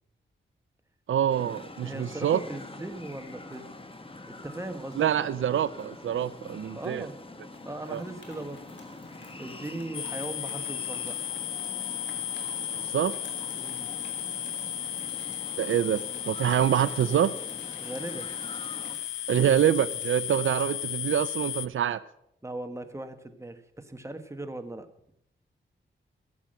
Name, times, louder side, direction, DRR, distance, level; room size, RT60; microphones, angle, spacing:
voice 1, 1.1-2.4 5.0-7.1 7.9-8.0 12.9-13.1 15.6-17.3 19.3-22.0, right 10 dB, 85° right, 16 dB, 0.5 m, -25 dB
sound 1, 1.3-19.0, left 2 dB, 25° left, 1.6 m, -45 dB
voice 2, 1.8-3.7 4.3-5.0 6.7-7.2 7.6-8.7 9.4-11.2 13.6-13.9 17.8-18.3 22.4-24.9, right 2 dB, 15° right, 8 dB, 1.4 m, -39 dB
sound 2, 2.0-2.6 2.9-3.1 3.5-4.3 4.9-6.8 7.1-7.2 7.5-20.6, left 3 dB, 70° left, 3.0 m, -53 dB
sound 3, 9.9-21.7, left 11 dB, 85° left, 0.4 m, -35 dB
15.0 x 7.1 x 7.6 m, 0.76 s
cardioid pair, 80°, 20 cm